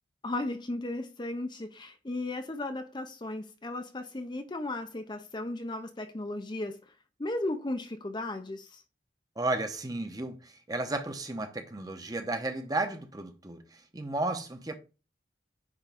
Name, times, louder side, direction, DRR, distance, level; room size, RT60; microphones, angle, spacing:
voice 1, 0.2-6.8 7.2-8.8, left 2 dB, 25° left, 0.6 m, -35 dB
voice 2, 9.4-14.8, right 2 dB, 20° right, 0.9 m, -33 dB
9.7 x 3.6 x 3.5 m
head